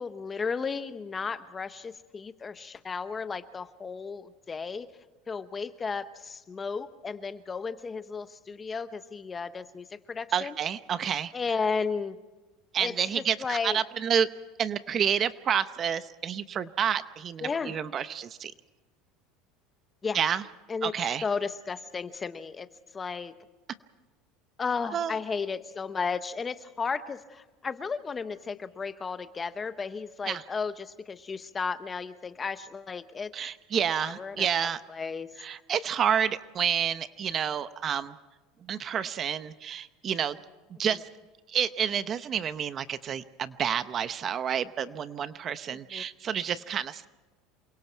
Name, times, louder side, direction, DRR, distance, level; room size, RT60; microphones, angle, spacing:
voice 1, 0.0-4.9 5.3-10.6 11.3-12.2 12.8-13.8 17.4-17.8 20.0-20.2 20.7-20.9 21.2-23.4 24.6-33.3 34.0-35.3 45.7-46.0, left 5 dB, 20° left, 11 dB, 1.1 m, -34 dB
voice 2, 10.3-11.3 12.7-14.3 14.6-18.5 20.1-20.4 20.8-21.2 24.9-25.1 30.3-30.4 33.3-34.8 35.4-38.2 38.7-40.4 40.8-41.1 41.5-47.1, right 8 dB, 35° right, 13 dB, 0.8 m, -29 dB
28.0 x 24.0 x 4.6 m, 1.2 s
supercardioid pair, 135°, 0 cm